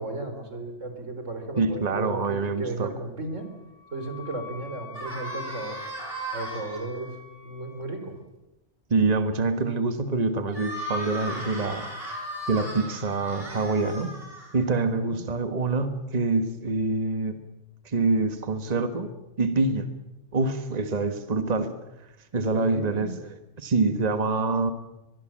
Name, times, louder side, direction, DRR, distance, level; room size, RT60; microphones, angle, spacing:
voice 1, 0.0-3.5 3.9-5.8 6.3-7.2 7.4-8.2 15.0-15.2 22.5-23.1, right 2 dB, 85° right, 7 dB, 4.0 m, -34 dB
voice 2, 1.6-2.9 8.9-11.9 12.5-14.2 14.5-17.4 17.8-19.1 19.4-19.9 20.3-21.7 22.3-23.1 23.6-24.7, right 3 dB, 35° right, 9 dB, 1.5 m, -25 dB
Wind instrument woodwind instrument, 3.3-8.1, left 5 dB, 50° left, 7.4 m, -45 dB
sound 1, 4.9-6.8 10.5-14.8, right 1 dB, 50° right, 5.5 m, -36 dB
24.0 x 21.0 x 7.5 m, 0.97 s
omnidirectional pair, 1.3 m